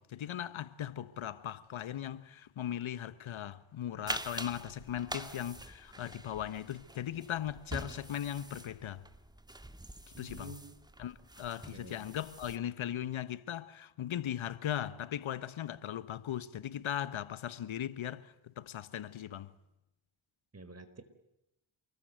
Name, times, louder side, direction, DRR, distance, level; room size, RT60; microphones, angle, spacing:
voice 1, 0.0-9.1 10.2-10.6 11.0-19.5, left 10 dB, 70° left, 1.4 m, -38 dB
sound 1, 4.1-12.6, right 1 dB, 10° right, 1.8 m, -45 dB
voice 2, 10.1-10.7 11.7-12.0 20.5-21.0, right 2 dB, 30° right, 4.6 m, -49 dB
28.0 x 22.0 x 9.3 m
cardioid pair, 90°, 50 cm